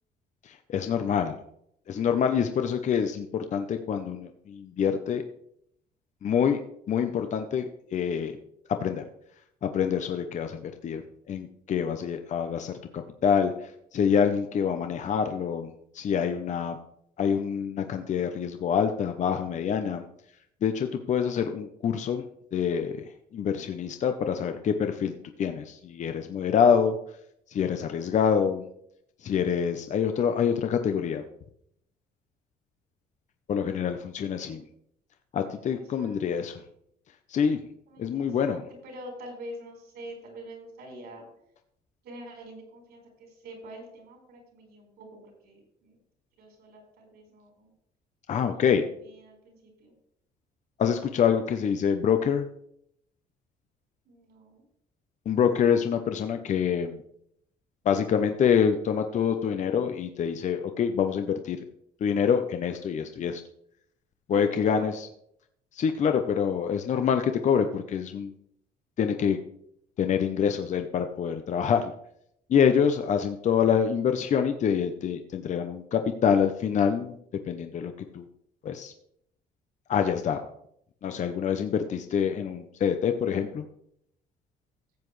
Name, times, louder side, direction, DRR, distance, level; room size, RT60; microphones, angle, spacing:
voice 1, 0.4-1.4 1.9-5.2 6.2-6.6 6.9-7.7 7.9-8.4 8.7-9.0 9.6-16.8 17.2-20.0 20.6-22.2 22.5-23.0 23.3-25.1 25.4-27.0 27.5-28.6 29.2-31.2 33.5-34.6 35.3-36.6 37.3-37.6 38.0-38.6 48.3-48.9 50.8-52.5 55.3-57.0 57.8-61.6 62.0-63.4 64.3-64.9 65.7-68.3 69.0-69.4 70.0-71.9 72.5-77.2 77.4-78.3 78.6-78.9 79.9-80.5 81.0-83.6, left 7 dB, 45° left, 7 dB, 0.8 m, -26 dB
voice 2, 34.1-34.7 35.5-36.5 37.9-41.2 42.0-46.0 46.4-47.7 48.3-49.9 54.0-54.6 64.3-64.9, right 1 dB, 75° right, 1 dB, 4.6 m, -45 dB
15.0 x 7.5 x 3.3 m, 0.72 s
cardioid pair, 110°, 17 cm